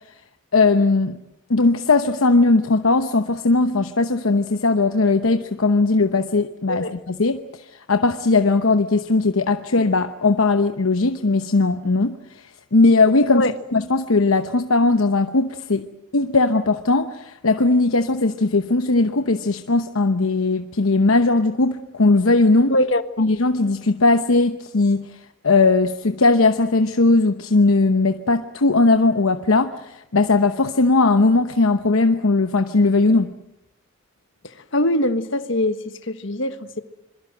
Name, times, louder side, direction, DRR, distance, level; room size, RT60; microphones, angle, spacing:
voice 1, 0.5-1.2 1.5-7.4 7.9-12.1 12.7-13.5 13.7-15.9 16.1-22.7 23.2-25.1 25.4-33.3, left 3 dB, 90° left, 8 dB, 1.0 m, -18 dB
voice 2, 22.7-23.0 34.7-36.8, left 1 dB, 65° left, 10 dB, 1.5 m, -22 dB
26.5 x 22.5 x 7.8 m, 0.87 s
head